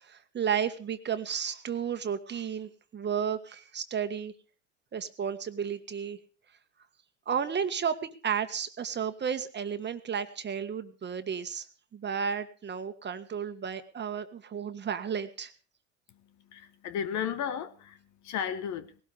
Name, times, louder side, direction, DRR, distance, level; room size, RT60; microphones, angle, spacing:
voice 1, 0.0-4.3 4.9-6.2 7.3-8.0 8.2-11.7 11.9-15.5, right 7 dB, 30° right, 1.7 m, -33 dB
voice 2, 16.1-19.0, left 8 dB, 50° left, 1.5 m, -35 dB
19.0 x 17.5 x 3.6 m
hypercardioid pair, 80°, 36 cm